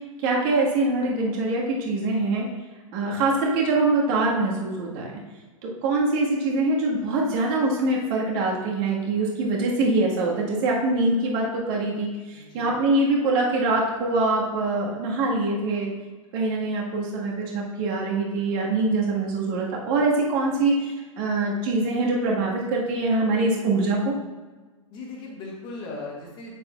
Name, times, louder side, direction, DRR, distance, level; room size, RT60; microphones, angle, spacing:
voice 1, 0.2-2.5 2.9-5.1 5.6-15.9 16.3-24.1, right 2 dB, 40° right, -2 dB, 1.7 m, -24 dB
voice 2, 12.3-12.8 24.9-26.5, left 3 dB, 30° left, -2 dB, 1.8 m, -38 dB
8.7 x 6.7 x 2.4 m, 1.3 s
figure-of-eight pair, 105°, 18 cm